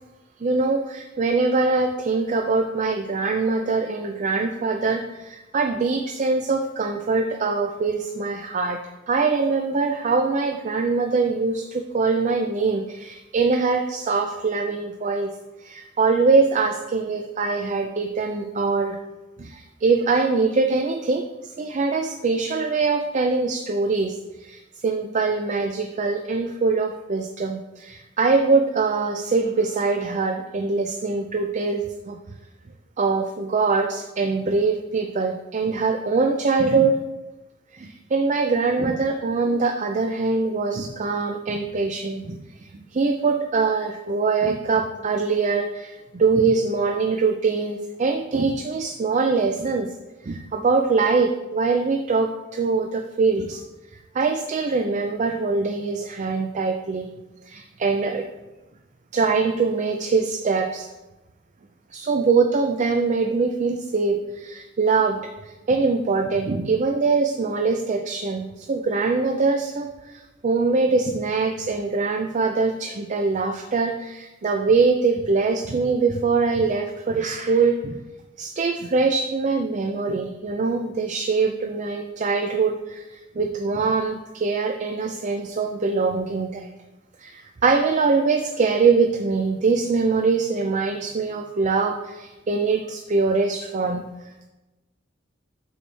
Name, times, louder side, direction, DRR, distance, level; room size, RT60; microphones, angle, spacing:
voice 1, 0.4-8.8 9.1-15.3 15.6-19.0 19.4-21.2 21.6-32.2 33.0-37.0 37.7-49.9 50.2-53.6 54.1-57.1 57.5-58.2 59.1-60.9 61.9-78.0 78.4-86.7 87.2-94.0, right 4 dB, 40° right, 4 dB, 0.4 m, -23 dB
8.7 x 4.7 x 3.3 m, 1.1 s
head